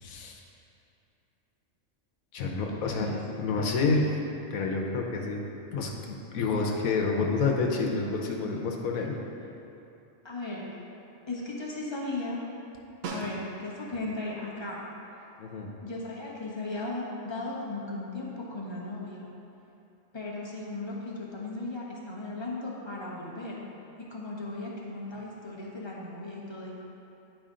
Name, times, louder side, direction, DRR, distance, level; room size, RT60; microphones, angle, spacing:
voice 1, 0.0-0.4 2.3-4.1 4.5-9.2 15.4-15.7, left 3 dB, 85° left, 1 dB, 1.2 m, -29 dB
voice 2, 2.7-3.2 10.2-10.7 11.3-12.4 13.1-14.8 15.1-15.2 15.8-19.3 20.1-23.6 24.1-26.7, left 2 dB, 20° left, -5 dB, 1.0 m, -36 dB
Snare drum, 13.0-13.9 18.4-18.5, right 3 dB, 85° right, 1.2 m, -38 dB
10.0 x 5.0 x 3.7 m, 2.8 s
omnidirectional pair, 1.4 m